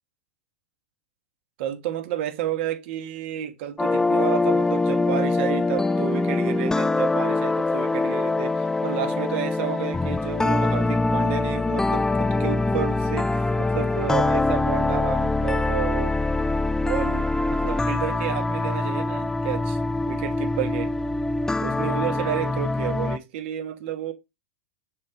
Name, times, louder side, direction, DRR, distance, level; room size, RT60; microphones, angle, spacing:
voice 1, 1.6-16.2 16.8-19.8 20.1-20.9 21.6-24.1, right 11 dB, 60° right, 1.4 m, -31 dB
sound 1, 3.8-23.2, left 2 dB, 10° left, 0.4 m, -24 dB
6.4 x 3.8 x 4.6 m
hypercardioid pair, 105°, 7 cm